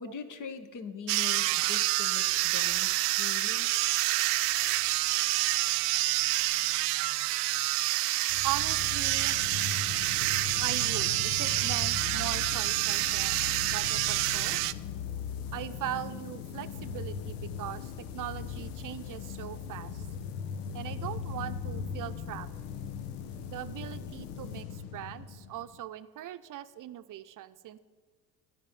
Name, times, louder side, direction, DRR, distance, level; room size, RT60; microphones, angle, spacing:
voice 1, 0.0-3.7, left 6 dB, 40° left, 10 dB, 1.3 m, -42 dB
sound 1, 1.1-14.7, right 19 dB, 75° right, 0.6 m, -28 dB
sound 2, 8.3-25.8, left 7 dB, 75° left, 1.0 m, -39 dB
voice 2, 8.4-9.4 10.6-13.5 13.7-14.6 15.5-20.0 20.7-22.5 23.5-27.8, right 13 dB, 40° right, 12 dB, 0.8 m, -39 dB
13.0 x 5.4 x 9.3 m, 1.4 s
hypercardioid pair, 65°, 47 cm